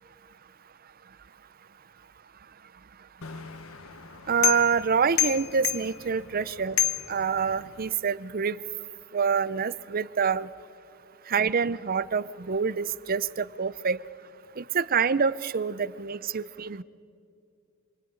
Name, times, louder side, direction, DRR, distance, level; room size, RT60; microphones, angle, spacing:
sound 1, 3.2-7.9, left 11 dB, 90° left, 1.0 m, -31 dB
voice 1, 4.3-6.8 7.1-8.6 9.1-10.5 11.3-14.0 14.6-16.8, right 6 dB, 45° right, 18 dB, 0.6 m, -26 dB
26.5 x 22.5 x 9.5 m, 2.4 s
head